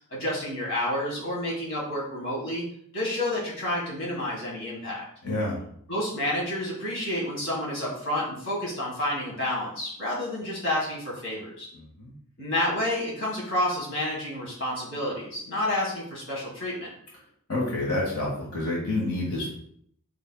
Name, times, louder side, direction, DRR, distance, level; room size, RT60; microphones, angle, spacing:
voice 1, 0.1-2.6 2.9-5.1 5.9-11.7 12.4-16.9, left 1 dB, 55° left, -4 dB, 1.7 m, -29 dB
voice 2, 5.2-5.6 11.7-12.1 17.5-19.5, left 2 dB, 75° left, -4 dB, 1.6 m, -28 dB
4.8 x 4.2 x 2.3 m, 0.66 s
head